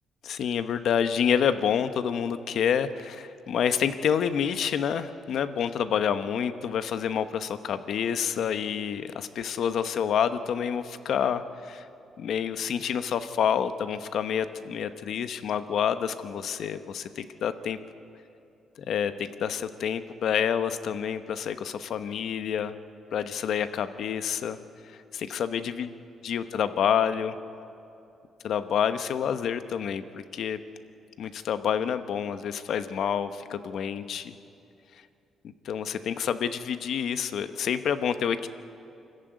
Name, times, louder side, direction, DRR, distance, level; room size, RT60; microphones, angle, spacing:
voice 1, 0.2-11.8 12.2-17.8 18.9-22.7 23.1-24.6 25.1-25.9 26.2-27.4 28.4-30.6 31.2-34.3 35.6-38.5, left 8 dB, 70° left, 11 dB, 1.0 m, -28 dB
25.0 x 14.5 x 9.5 m, 2.7 s
cardioid pair, 90°, 0 cm